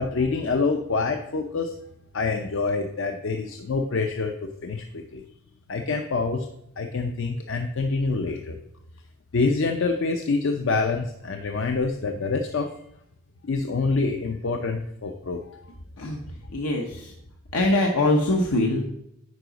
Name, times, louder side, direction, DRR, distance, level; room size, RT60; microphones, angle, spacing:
voice 1, 0.0-1.7 2.1-5.2 5.7-6.5 6.8-8.6 9.3-12.8 13.4-15.6, left 4 dB, 60° left, 5 dB, 0.5 m, -26 dB
voice 2, 16.5-17.1 17.5-18.8, left 1 dB, 80° left, 0 dB, 0.9 m, -23 dB
9.5 x 5.0 x 3.9 m, 0.78 s
head